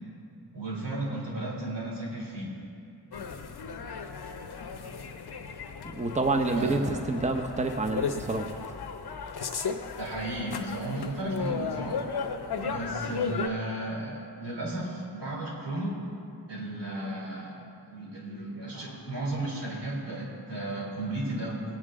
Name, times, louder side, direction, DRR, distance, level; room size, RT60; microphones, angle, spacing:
voice 1, 0.5-2.5 6.5-6.8 10.0-12.3 12.6-16.0 16.5-21.6, right 1 dB, 90° right, -3 dB, 3.2 m, -34 dB
sound 1, 3.1-13.5, left 5 dB, 70° left, 0.9 m, -35 dB
voice 2, 5.9-8.5, right 2 dB, 15° right, 5 dB, 0.8 m, -28 dB
19.5 x 8.9 x 3.7 m, 2.6 s
wide cardioid pair, 75°, 41 cm